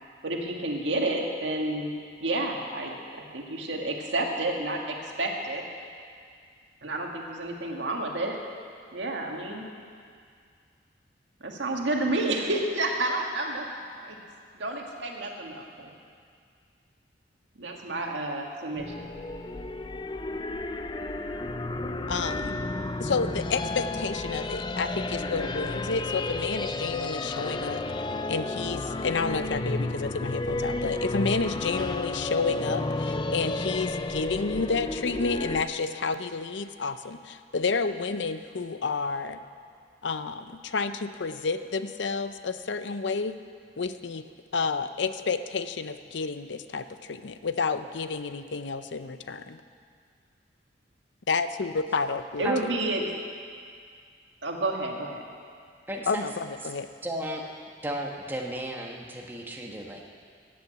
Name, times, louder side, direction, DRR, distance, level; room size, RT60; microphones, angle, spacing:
voice 1, 0.2-1.9 2.2-5.6 6.8-8.4 8.9-9.7 11.4-13.7 14.0-14.2 14.6-15.9 17.6-19.1 52.4-53.0 54.4-55.2, right 2 dB, 80° right, 1 dB, 1.8 m, -30 dB
sound 1, 18.8-35.6, left 2 dB, 25° left, 0.5 m, -32 dB
voice 2, 22.1-22.6 23.0-27.8 28.3-39.4 40.0-43.3 43.8-44.2 44.5-49.6 51.3-52.5 56.1-56.9, left 4 dB, 80° left, 11 dB, 0.6 m, -30 dB
voice 3, 55.9-56.2 56.6-56.7 57.0-57.4 57.8-60.0, right 1 dB, 10° right, 0 dB, 1.3 m, -34 dB
15.0 x 8.7 x 8.0 m, 2.2 s
head